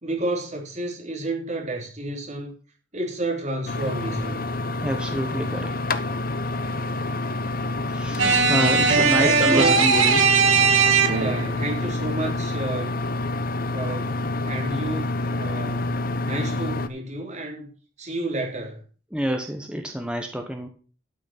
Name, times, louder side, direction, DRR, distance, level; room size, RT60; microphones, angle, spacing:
voice 1, 0.0-2.6 2.9-4.4 8.9-9.8 11.1-13.0 13.7-15.9 16.2-17.7 18.0-18.8, right 2 dB, 35° right, 3.5 m, -30 dB
sound 1, 3.7-16.9, left 2 dB, 45° left, 0.8 m, -28 dB
voice 2, 4.8-6.0 7.9-10.2 19.1-20.7, right 1 dB, 5° right, 1.1 m, -27 dB
sound 2, 8.2-11.5, right 5 dB, 85° right, 1.9 m, -19 dB
12.0 x 6.2 x 5.9 m
head